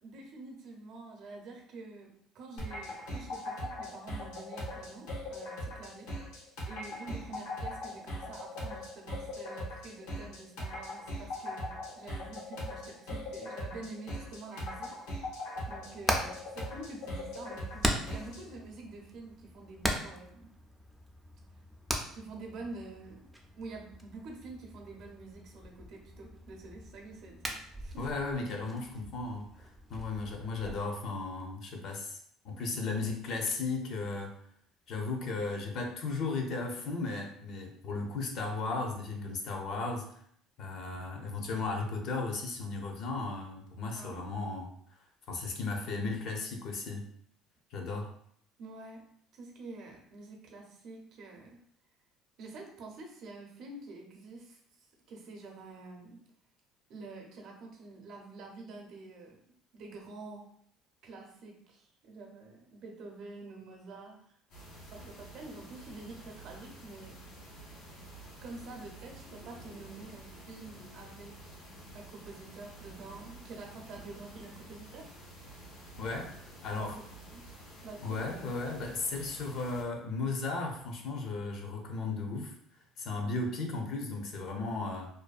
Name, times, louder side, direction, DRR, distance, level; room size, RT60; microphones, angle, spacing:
voice 1, 0.0-14.9 15.7-20.5 22.1-23.3 23.6-28.1 43.9-44.2 48.6-49.0 49.3-51.6 52.4-56.2 56.9-59.4 59.7-60.5 61.0-64.2 64.9-67.2 68.0-68.1 68.4-71.6 71.9-75.1 76.8-77.1 77.3-77.5 77.8-78.2, right 3 dB, 55° right, 1 dB, 0.6 m, -47 dB
sound 1, 2.6-18.5, left 1 dB, 90° left, 0.8 m, -40 dB
Hammer, 15.6-30.8, equal, 5° right, 0.3 m, -40 dB
voice 2, 28.0-32.2 32.4-34.3 34.9-40.0 40.6-44.7 45.3-47.0 47.7-48.1 76.0-76.3 76.6-77.0 78.0-82.5 83.0-85.1, left 3 dB, 55° left, 2 dB, 0.5 m, -35 dB
sound 2, 64.5-79.8, right 1 dB, 70° left, 1.3 m, -50 dB
2.5 x 2.3 x 2.4 m, 0.67 s
cardioid pair, 130°, 0 cm